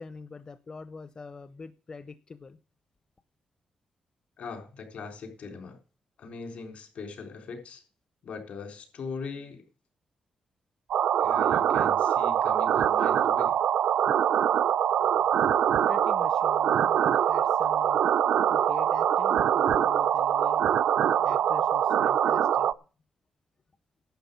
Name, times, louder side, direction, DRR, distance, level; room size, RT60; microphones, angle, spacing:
voice 1, 0.0-2.6 15.8-18.0 18.5-20.6 21.2-22.7, left 4 dB, 35° left, 12 dB, 0.7 m, -44 dB
voice 2, 4.4-5.8 6.2-7.8 8.2-9.6 11.2-13.6, left 4 dB, 70° left, 5 dB, 4.0 m, -40 dB
sound 1, 10.9-22.7, right 9 dB, 85° right, 0.5 m, -24 dB
12.0 x 7.8 x 6.9 m, 0.36 s
cardioid pair, 110°, 2 cm